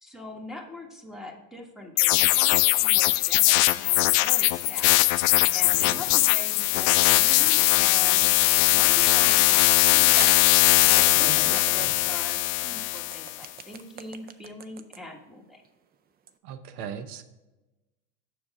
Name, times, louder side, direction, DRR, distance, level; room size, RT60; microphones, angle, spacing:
voice 1, 0.0-15.6, left 2 dB, ahead, 1 dB, 1.5 m, -42 dB
sound 1, 2.0-13.4, left 19 dB, 60° left, 0.5 m, -20 dB
voice 2, 5.6-6.0 11.2-11.9 16.4-17.2, right 8 dB, 75° right, 11 dB, 0.8 m, -39 dB
sound 2, 6.1-6.7 7.4-7.5 9.4-9.5 10.2-16.4, right 7 dB, 20° right, 0.4 m, -42 dB
7.0 x 6.5 x 3.7 m, 1.1 s
hypercardioid pair, 90°, 46 cm